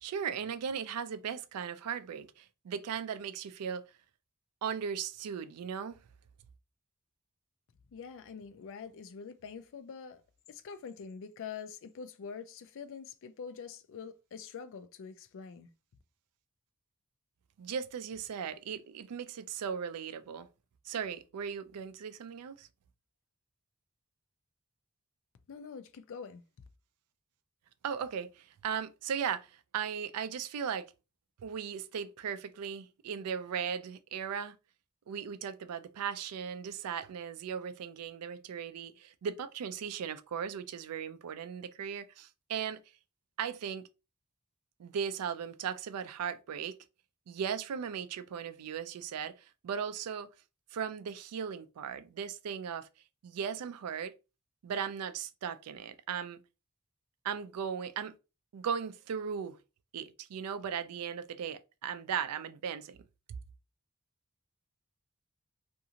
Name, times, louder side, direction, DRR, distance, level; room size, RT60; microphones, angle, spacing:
voice 1, 0.0-3.8 4.6-6.0 17.6-20.5 20.8-22.7 27.8-30.9 31.4-34.5 35.1-42.8 43.4-43.9 44.8-46.8 47.3-50.3 50.7-52.9 53.2-54.1 54.6-56.4 57.2-58.1 58.5-59.6 59.9-63.0 63.3-63.4, right 7 dB, 80° right, 0.4 m, -37 dB
voice 2, 7.9-10.2 10.5-15.7 25.5-26.4, left 6 dB, 60° left, 0.4 m, -45 dB
2.5 x 2.4 x 2.8 m
head